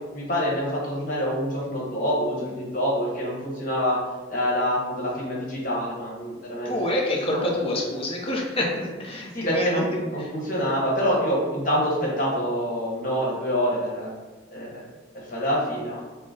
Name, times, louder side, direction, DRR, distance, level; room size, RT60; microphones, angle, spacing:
voice 1, 0.1-4.0 4.3-6.7 7.3-7.5 9.3-9.8 10.1-14.1 14.5-14.8 15.3-16.0, equal, 45° left, -5 dB, 1.1 m, -26 dB
voice 2, 6.6-10.0, left 1 dB, 30° left, -1 dB, 0.6 m, -27 dB
3.8 x 2.0 x 3.7 m, 1.3 s
head